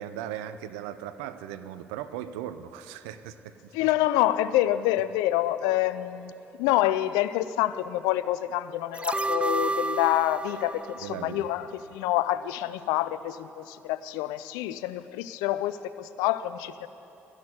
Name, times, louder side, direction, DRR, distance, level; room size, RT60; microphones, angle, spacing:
voice 1, 0.0-3.7 11.0-11.5, right 10 dB, 75° right, 12 dB, 0.5 m, -38 dB
voice 2, 3.7-6.3 6.6-16.9, left 14 dB, 75° left, 14 dB, 0.4 m, -27 dB
sound 1, 8.9-12.1 12.4-12.5, right 2 dB, 15° right, 0.4 m, -31 dB
13.5 x 6.2 x 9.6 m, 2.9 s
hypercardioid pair, 50°, 7 cm